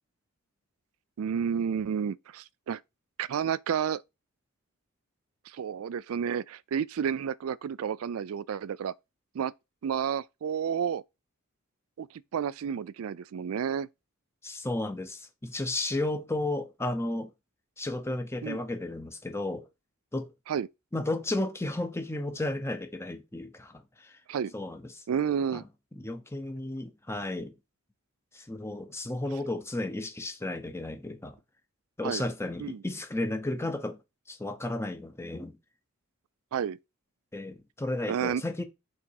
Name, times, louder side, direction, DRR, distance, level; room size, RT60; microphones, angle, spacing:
voice 1, 1.2-2.8 3.2-4.0 5.5-8.9 9.3-9.5 9.8-11.0 12.0-12.1 12.3-13.9 18.4-18.6 20.5-20.7 24.3-24.5 25.1-25.6 32.0-32.2 32.6-32.8 36.5-36.8 38.1-38.4, right 7 dB, 80° right, 0.4 m, -31 dB
voice 2, 14.4-17.3 17.8-19.6 20.1-20.3 20.9-24.2 24.5-25.0 25.5-25.7 25.9-27.5 28.3-31.4 32.0-34.0 34.3-35.6 37.3-38.6, left 2 dB, 10° left, 0.9 m, -33 dB
5.9 x 3.9 x 4.7 m
head